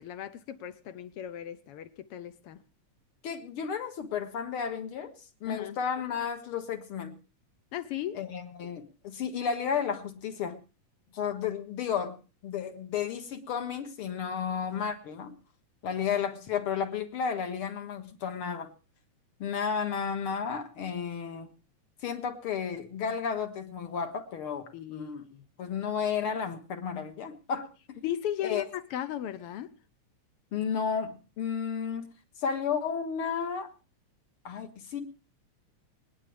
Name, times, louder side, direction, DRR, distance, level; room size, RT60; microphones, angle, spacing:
voice 1, 0.0-2.6 5.4-5.8 7.7-8.2 24.7-25.5 28.0-29.7, left 11 dB, 70° left, 1.4 m, -36 dB
voice 2, 3.2-5.1 5.4-7.2 8.1-10.6 11.1-12.2 12.4-15.3 15.8-18.7 19.4-21.5 22.0-25.3 25.6-28.0 28.4-28.6 30.5-32.1 32.4-33.7 34.4-35.0, left 7 dB, 55° left, 2.2 m, -32 dB
28.0 x 9.8 x 3.3 m
omnidirectional pair, 3.3 m